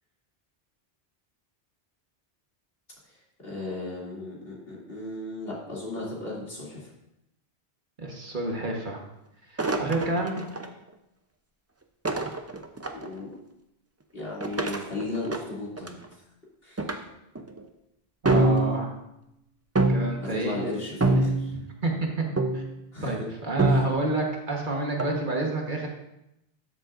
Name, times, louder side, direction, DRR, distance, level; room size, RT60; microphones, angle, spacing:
voice 1, 3.1-6.9 12.9-13.4 14.1-16.0 16.6-16.9 20.2-21.5 22.9-23.3 23.6-23.8, left 2 dB, 65° left, -5 dB, 3.0 m, -35 dB
voice 2, 8.0-9.0 9.5-10.4 18.2-18.9 19.9-20.6 21.5-22.1 22.5-22.6 23.0-25.9, right 2 dB, 50° right, 0 dB, 1.4 m, -29 dB
sound 1, 9.6-10.7 12.0-13.1 14.4-16.0 16.8-17.0 17.3-17.6 18.2-19.0 19.7-20.3 21.0-21.7 22.4-22.8 23.6-24.2 25.0-25.2, right 2 dB, 20° right, 0.4 m, -25 dB
13.0 x 7.4 x 2.5 m, 0.85 s
omnidirectional pair, 1.1 m